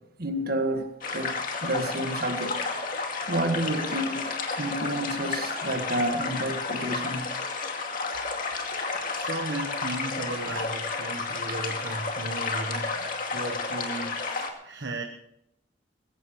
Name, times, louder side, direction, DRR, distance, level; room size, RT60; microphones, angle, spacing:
voice 1, 0.2-1.4 1.6-2.6 3.3-7.3, right 1 dB, 60° right, 1.8 m, -30 dB
sound 1, 1.0-14.5, left 4 dB, 50° left, 2.3 m, -31 dB
voice 2, 8.7-15.0, right 2 dB, 75° right, 1.2 m, -36 dB
21.5 x 16.5 x 3.2 m
head